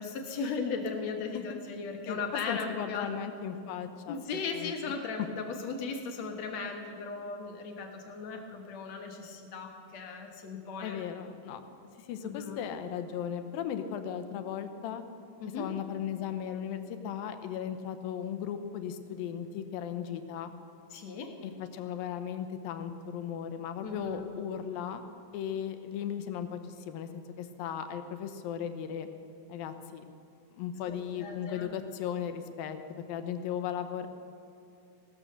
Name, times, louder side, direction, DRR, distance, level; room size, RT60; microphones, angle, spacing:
voice 1, 0.0-3.1 4.1-11.0 12.2-12.6 15.4-15.7 20.9-21.4 23.8-24.2 30.9-31.7, left 4 dB, 55° left, 3 dB, 2.2 m, -37 dB
voice 2, 2.1-4.2 4.5-4.7 10.8-11.6 12.1-15.0 15.6-20.5 21.4-25.0 25.3-29.1 29.5-30.0 30.6-32.8 33.1-34.1, left 8 dB, 75° left, 9 dB, 2.6 m, -36 dB
17.0 x 12.5 x 6.6 m, 2.6 s
omnidirectional pair, 4.2 m